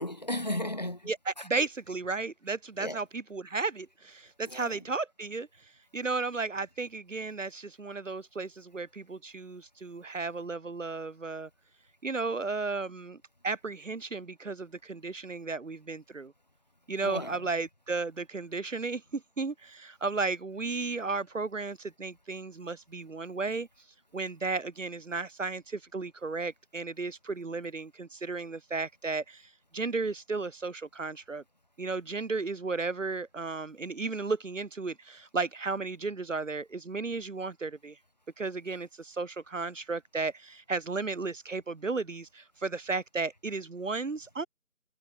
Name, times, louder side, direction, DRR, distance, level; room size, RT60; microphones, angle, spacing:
voice 1, 0.0-1.5 2.8-3.0 4.4-4.8 17.0-17.4, left 1 dB, 30° left, 1.2 m, -35 dB
voice 2, 1.1-5.5 5.9-11.5 12.0-13.2 13.4-16.3 16.9-23.7 24.1-31.4 31.8-38.0 38.4-44.5, right 3 dB, 60° right, 1.3 m, -34 dB
figure-of-eight pair, 175°, 43 cm